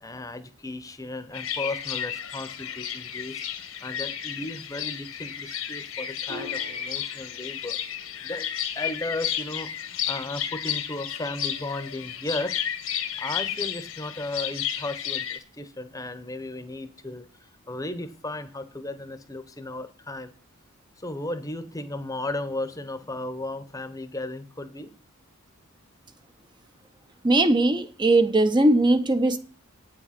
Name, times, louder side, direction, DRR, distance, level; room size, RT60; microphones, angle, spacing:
voice 1, 0.0-3.4 3.8-7.8 8.2-8.5 8.7-12.6 13.2-20.3 21.0-24.9, left 2 dB, 15° left, 0.8 m, -35 dB
sound 1, 1.3-15.4, left 10 dB, 75° left, 1.4 m, -32 dB
Piano, 6.3-13.2, equal, 85° right, 4.4 m, -49 dB
voice 2, 27.2-29.4, right 2 dB, 20° right, 0.6 m, -20 dB
8.9 x 7.5 x 5.8 m
head